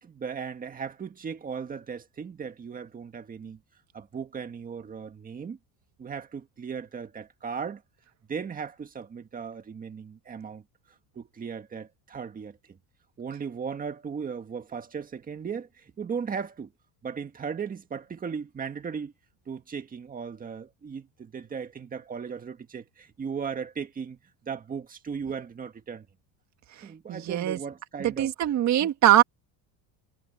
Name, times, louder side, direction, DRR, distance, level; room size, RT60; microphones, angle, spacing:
voice 1, 0.0-3.6 3.9-5.6 6.0-7.8 8.3-10.6 11.2-12.6 13.2-16.7 17.0-19.1 19.5-24.2 24.5-26.1 26.8-28.3 28.8-28.9, right 6 dB, 20° right, 1.7 m, -37 dB
voice 2, 26.8-27.6 28.0-29.2, right 13 dB, 35° right, 1.8 m, -22 dB
cardioid pair, 165°, 45 cm